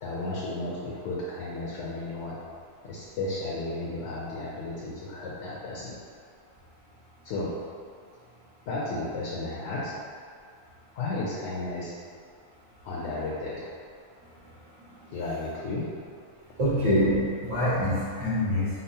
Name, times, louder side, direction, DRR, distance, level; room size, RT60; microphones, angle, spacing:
voice 1, 0.0-2.4 2.8-6.0 7.2-7.5 8.7-9.9 10.9-11.9 12.8-13.6 15.1-15.9, left 2 dB, 70° left, -6 dB, 0.9 m, -33 dB
voice 2, 16.6-18.7, equal, 70° right, -9 dB, 1.6 m, -25 dB
5.2 x 2.0 x 2.7 m, 2.2 s
omnidirectional pair, 1.4 m